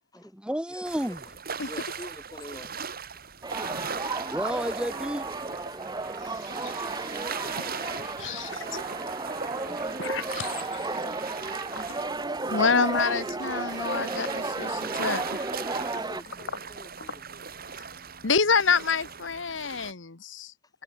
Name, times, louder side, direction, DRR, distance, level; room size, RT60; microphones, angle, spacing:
voice 1, 0.1-1.2 4.3-5.3, equal, 5° right, 2.5 m, -31 dB
voice 2, 0.7-1.2 1.6-2.7 4.1-4.2 6.5-6.6 7.3-10.2 10.8-11.3 12.6-12.8 15.9-17.2, left 1 dB, 20° left, 3.8 m, -46 dB
sound 1, 0.9-19.9, right 6 dB, 50° right, 4.7 m, -39 dB
sound 2, 3.4-16.2, right 3 dB, 20° right, 1.6 m, -33 dB
voice 3, 8.2-8.6 10.0-10.8 12.5-15.5 17.8-17.9 18.2-20.5, left 5 dB, 75° left, 1.4 m, -27 dB
head